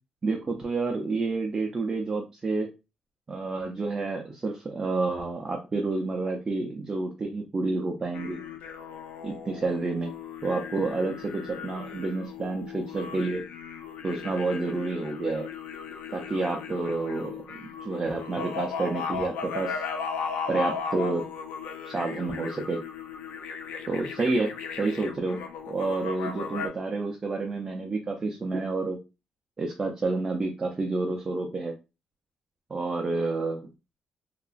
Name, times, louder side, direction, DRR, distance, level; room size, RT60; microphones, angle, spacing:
voice 1, 0.2-2.7 3.3-8.4 9.2-10.1 10.4-13.4 14.0-15.5 16.1-19.8 20.5-21.3 21.8-22.8 23.9-25.4 25.7-29.0 29.6-31.7 32.7-33.7, right 3 dB, 25° right, 2 dB, 0.4 m, -29 dB
sound 1, 8.1-26.7, left 6 dB, 80° left, 0.5 m, -37 dB
2.8 x 2.4 x 2.4 m, 0.27 s
cardioid pair, 150°, 2 cm